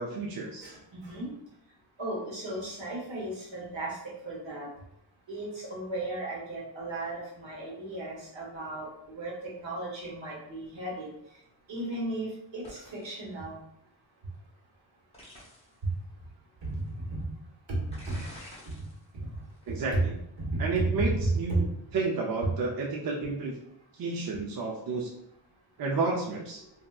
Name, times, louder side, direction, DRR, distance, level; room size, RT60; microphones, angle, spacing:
voice 1, 0.0-0.7 19.7-20.1 20.6-21.7 21.9-23.5 24.0-25.1 25.8-26.6, right 3 dB, 50° right, -2 dB, 0.5 m, -31 dB
voice 2, 0.6-1.3 2.0-4.7 5.3-11.1 11.7-13.6 16.6-17.3 17.7-18.2 18.8-18.9 19.1-19.4 19.9-20.1 20.4-21.7, right 2 dB, 75° right, -4 dB, 1.3 m, -34 dB
sound 1, 12.6-13.2 15.1-15.7 16.6-16.7 17.9-19.0 19.4-19.7, left 1 dB, 15° left, 0.8 m, -48 dB
3.4 x 2.7 x 2.3 m, 0.76 s
wide cardioid pair, 160°, 45 cm